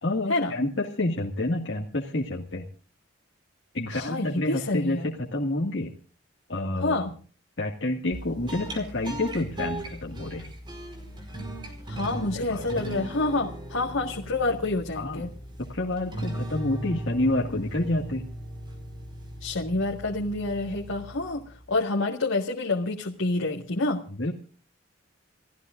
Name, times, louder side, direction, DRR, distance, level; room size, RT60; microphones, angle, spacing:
voice 1, 0.0-2.7 3.7-5.9 6.5-7.0 7.6-10.5 12.4-12.6 14.9-15.3 15.6-18.2 24.2-24.3, left 2 dB, 65° left, -2 dB, 2.0 m, -28 dB
voice 2, 3.9-5.1 6.8-7.1 11.9-15.3 19.4-24.0, left 2 dB, 80° left, 0 dB, 1.9 m, -28 dB
sound 1, 8.1-21.7, right 1 dB, 20° right, 4.8 m, -38 dB
29.0 x 15.0 x 2.6 m, 0.42 s
head